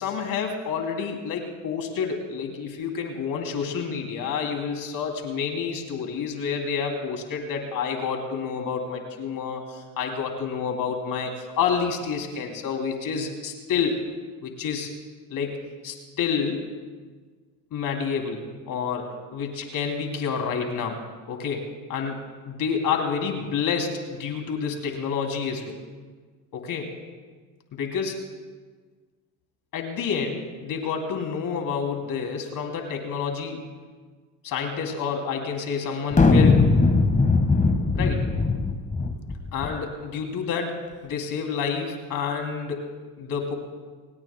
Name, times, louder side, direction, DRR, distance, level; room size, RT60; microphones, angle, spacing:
voice 1, 0.0-14.0 14.4-14.9 15.3-16.6 17.7-21.0 21.3-25.8 26.5-26.9 27.7-28.2 29.7-33.6 34.4-36.7 37.9-38.3 39.5-42.9 43.2-43.5, left 6 dB, 50° left, 3 dB, 2.8 m, -29 dB
sound 1, 36.1-39.8, left 3 dB, 20° left, 1.4 m, -20 dB
29.0 x 18.0 x 2.2 m, 1.5 s
supercardioid pair, 85°, 41 cm